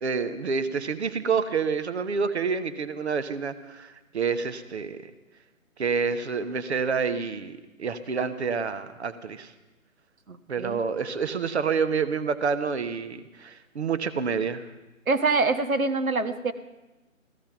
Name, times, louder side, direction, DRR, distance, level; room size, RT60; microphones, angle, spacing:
voice 1, 0.0-5.0 5.8-9.5 10.5-14.7, right 5 dB, 50° right, 11 dB, 1.1 m, -28 dB
voice 2, 10.3-10.8 15.1-16.5, right 3 dB, 75° right, 10 dB, 1.4 m, -25 dB
15.5 x 14.5 x 5.9 m, 1.1 s
figure-of-eight pair, 150°, 42 cm